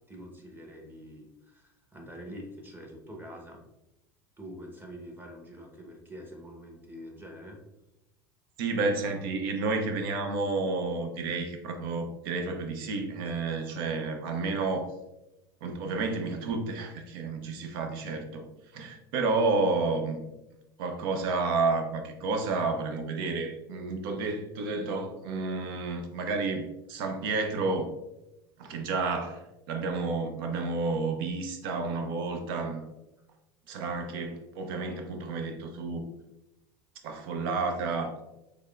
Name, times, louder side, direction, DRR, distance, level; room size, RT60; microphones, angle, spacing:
voice 1, 0.1-3.6 4.4-7.6, equal, 15° right, 1 dB, 0.9 m, -45 dB
voice 2, 8.6-14.9 15.6-18.5 18.7-20.3 20.8-27.9 28.6-32.8 33.7-36.0 37.0-38.1, right 3 dB, 75° right, 5 dB, 0.6 m, -30 dB
3.4 x 3.2 x 2.4 m, 0.94 s
supercardioid pair, 100°, 12 cm